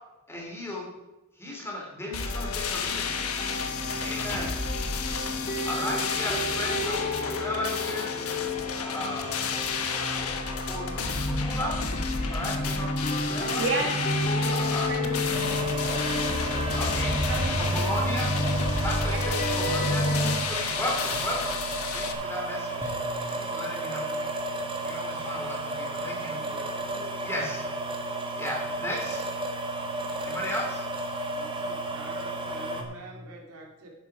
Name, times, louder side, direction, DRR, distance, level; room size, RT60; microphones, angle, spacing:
voice 1, 0.3-0.9 1.4-3.2 3.9-4.5 5.6-8.1 8.7-9.6 9.9-11.8 12.3-13.7 14.4-15.1 16.7-17.1 17.6-18.3 18.8-20.0 20.3-21.6 21.9-22.9 23.3-24.1 24.8-26.4 27.2-27.7 28.4-29.3 30.2-30.9, left 1 dB, 10° left, -2 dB, 3.0 m, -35 dB
sound 1, 2.1-22.1, left 5 dB, 80° left, 1.2 m, -32 dB
sound 2, 2.2-20.3, left 1 dB, 35° left, 1.9 m, -31 dB
voice 2, 13.2-13.9 14.4-14.6 14.9-15.6 15.9-16.5 17.3-17.8 19.1-19.2 26.2-26.7 26.9-27.1, right 3 dB, 60° right, 1 dB, 2.3 m, -34 dB
sound 3, 15.3-32.8, right 2 dB, 25° right, 1.4 m, -33 dB
voice 3, 31.3-33.9, right 2 dB, 90° right, 0 dB, 2.7 m, -45 dB
11.5 x 9.1 x 4.8 m, 1.1 s
head